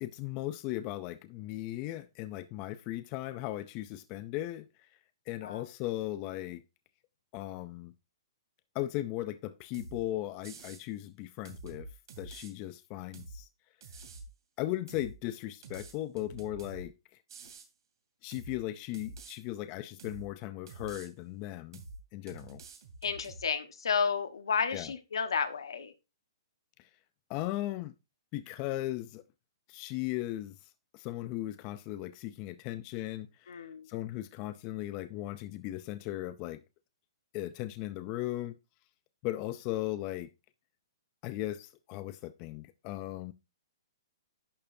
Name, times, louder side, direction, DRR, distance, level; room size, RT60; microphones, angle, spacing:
voice 1, 0.0-4.9 5.3-6.6 7.3-7.9 8.7-11.9 12.2-13.5 14.6-16.9 18.2-21.8 22.1-22.6 24.7-24.9 26.8-26.9 27.3-27.9 28.3-29.2 29.7-36.6 37.3-38.5 39.2-40.3 41.2-43.3, left 15 dB, 30° left, 0.5 m, -37 dB
sound 1, 9.7-10.0 10.4-10.8 11.4-12.5 13.1-13.4 13.8-14.3 14.9-15.1 15.6-16.9 17.3-17.7 18.3-18.6 18.9-19.4 20.0-20.3 20.7-21.1 21.7-22.0 22.3-23.4, right 3 dB, 65° right, 2.6 m, -47 dB
voice 2, 23.0-25.9 33.5-33.9, left 6 dB, 85° left, 1.3 m, -32 dB
11.0 x 6.7 x 2.7 m
hypercardioid pair, 145°, 3 cm